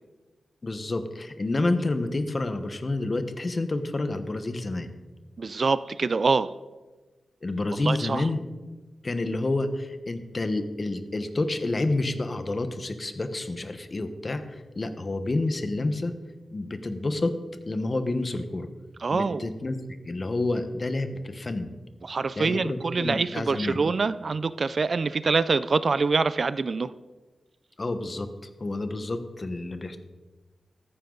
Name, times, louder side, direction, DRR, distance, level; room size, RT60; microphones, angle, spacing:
voice 1, 0.6-4.9 7.4-8.4 9.0-16.1 16.5-17.4 17.7-18.7 19.1-19.8 20.0-21.7 22.4-23.8 27.8-28.3 28.6-30.0, left 2 dB, 35° left, 9 dB, 1.1 m, -29 dB
voice 2, 5.4-6.5 7.8-8.3 19.0-19.5 22.0-26.9, right 4 dB, 50° right, 15 dB, 0.4 m, -25 dB
15.0 x 14.0 x 4.0 m, 1.2 s
wide cardioid pair, 115°, 0 cm